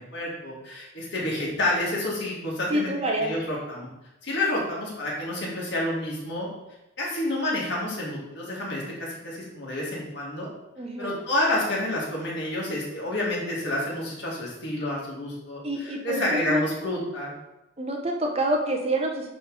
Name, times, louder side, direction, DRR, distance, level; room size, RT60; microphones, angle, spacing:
voice 1, 0.0-2.9 3.2-3.9 4.2-6.5 7.0-10.5 11.0-17.3, left 1 dB, 60° left, -5 dB, 2.4 m, -29 dB
voice 2, 2.7-3.4 10.8-11.1 15.6-16.6 17.8-19.3, right 1 dB, 30° right, 1 dB, 0.8 m, -27 dB
9.9 x 3.4 x 4.1 m, 0.95 s
head